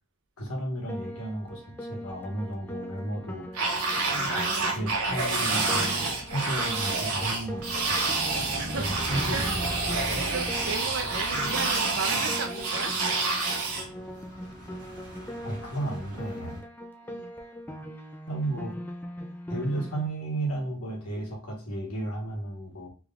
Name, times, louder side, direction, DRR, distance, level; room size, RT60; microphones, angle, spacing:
voice 1, 0.4-3.5 4.7-8.1 8.8-9.7 9.9-10.2 15.4-16.6 18.3-18.7 19.5-22.9, right 1 dB, 90° left, 0 dB, 1.3 m, -33 dB
Piano, 0.9-20.1, equal, 10° left, 0.3 m, -41 dB
sound 1, 3.5-13.9, right 3 dB, 85° right, 0.9 m, -28 dB
sound 2, 3.6-16.6, right 1 dB, 40° right, 1.0 m, -42 dB
voice 2, 8.5-13.5 17.0-17.3, right 4 dB, 55° right, 5 dB, 0.6 m, -36 dB
3.5 x 3.0 x 2.4 m, 0.39 s
head